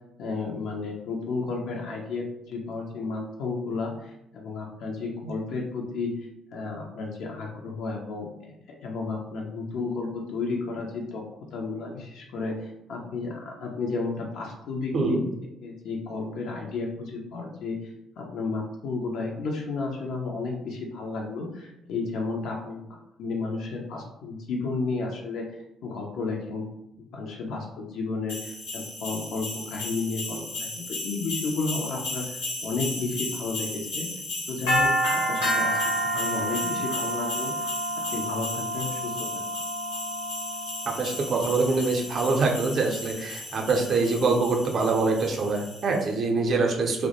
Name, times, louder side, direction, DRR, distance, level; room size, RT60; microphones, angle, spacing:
voice 1, 0.2-6.1 6.5-8.3 8.8-11.2 11.5-15.2 15.6-17.8 18.2-22.8 23.2-25.4 25.8-26.6 27.1-34.1 34.5-35.8 36.1-37.7 38.1-39.1, left 3 dB, 60° left, 0 dB, 0.3 m, -32 dB
sound 1, 28.3-46.0, equal, 80° left, 0.9 m, -31 dB
voice 2, 40.9-47.1, right 3 dB, 45° right, 2 dB, 0.5 m, -24 dB
2.2 x 2.0 x 2.7 m, 0.87 s
figure-of-eight pair, 45°, 0 cm